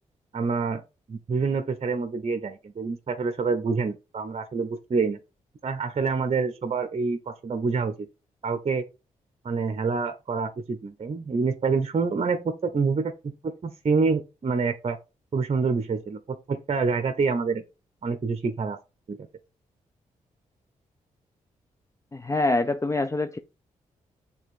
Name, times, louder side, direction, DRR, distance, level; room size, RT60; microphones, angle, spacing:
voice 1, 0.3-0.8 1.1-5.2 5.6-8.1 8.4-8.8 9.4-13.1 13.4-15.0 15.3-17.6 18.0-18.8 19.1-19.2, right 4 dB, 45° right, 0.9 m, -27 dB
voice 2, 22.1-23.4, left 2 dB, 20° left, 0.6 m, -25 dB
6.4 x 3.5 x 4.7 m
supercardioid pair, 50°, 14 cm